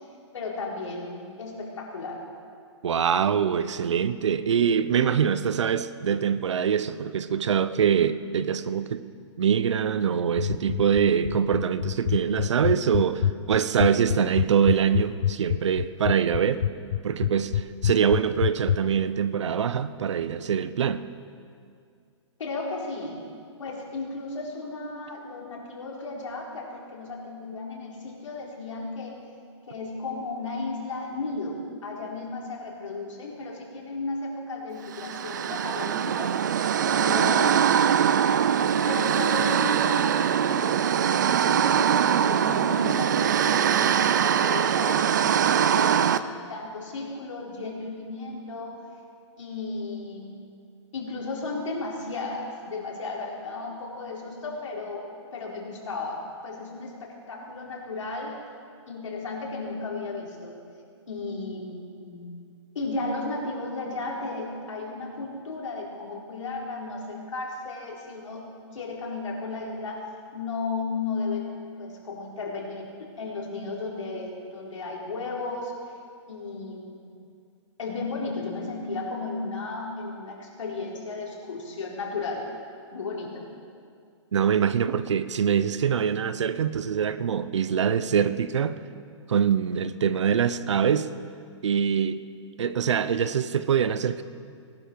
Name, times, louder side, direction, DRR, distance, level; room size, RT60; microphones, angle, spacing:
voice 1, 0.3-2.2 22.4-23.3 23.6-29.2 29.7-36.6 36.8-37.7 38.9-46.2 46.5-48.8 49.4-50.4 50.9-55.1 55.3-58.4 58.9-60.6 61.1-62.4 62.7-68.5 68.7-70.1 70.3-75.7 76.3-77.1 77.8-82.5 82.9-83.4, left 3 dB, 80° left, -3 dB, 4.1 m, -34 dB
voice 2, 2.8-9.1 9.4-16.6 17.0-21.1 84.3-88.8 89.3-91.1 91.6-92.2 92.6-94.2, right 7 dB, 70° right, 14 dB, 0.7 m, -24 dB
sound 1, 10.4-18.8, left 10 dB, 55° left, 0.4 m, -25 dB
sound 2, 34.9-46.2, right 8 dB, 40° right, 0.4 m, -22 dB
19.5 x 12.0 x 4.6 m, 2.3 s
hypercardioid pair, 175°, 16 cm